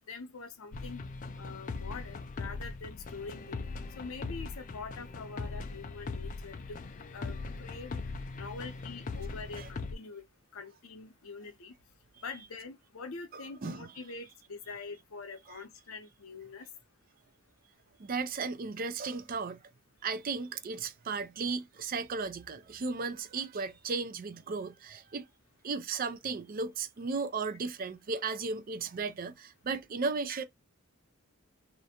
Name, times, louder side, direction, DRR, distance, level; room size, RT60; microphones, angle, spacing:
voice 1, 0.1-1.0 1.4-3.6 4.0-6.8 7.1-8.0 8.3-10.2 10.5-11.7 12.2-16.7, left 4 dB, 75° left, 0.7 m, -44 dB
sound 1, 0.7-10.0, left 3 dB, 35° left, 0.3 m, -40 dB
voice 2, 13.3-13.9 15.5-15.6 18.0-19.6 20.0-25.3 25.6-30.4, right 4 dB, 40° right, 0.4 m, -35 dB
2.5 x 2.1 x 2.8 m
head